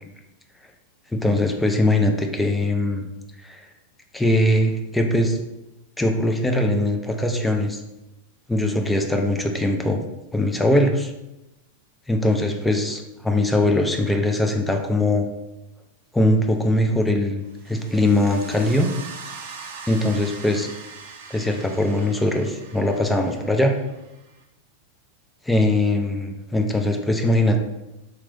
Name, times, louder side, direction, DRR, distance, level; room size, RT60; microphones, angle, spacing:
voice 1, 1.1-3.0 3.4-3.7 4.1-5.4 6.0-7.8 8.5-10.0 10.3-11.1 12.1-15.3 16.1-18.9 19.9-20.7 21.3-23.8 25.5-27.6, left 1 dB, 5° left, 3 dB, 0.4 m, -21 dB
sound 1, 17.5-24.4, right 5 dB, 55° right, 0.4 m, -41 dB
3.8 x 3.0 x 2.5 m, 0.96 s
figure-of-eight pair, 90°, 0 cm